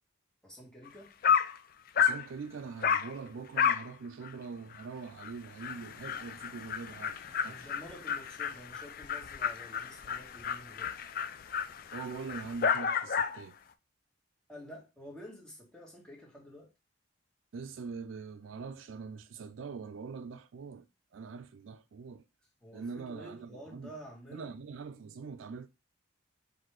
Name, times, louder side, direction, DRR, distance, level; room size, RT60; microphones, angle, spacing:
voice 1, 0.4-1.2 7.5-10.9 14.5-16.7 22.6-24.5, equal, 5° left, 1.5 m, -50 dB
Dog, 0.9-1.0 1.2-1.6 2.0-2.3 2.8-3.1 3.6-3.9 4.2-4.3 4.7-4.8 5.2-5.3 5.6-13.4, left 7 dB, 45° left, 0.3 m, -31 dB
voice 2, 2.0-7.7 11.9-13.6 17.5-20.9 21.1-22.2 22.7-23.9 24.3-25.7, right 5 dB, 75° right, 0.4 m, -43 dB
4.0 x 2.6 x 4.6 m
head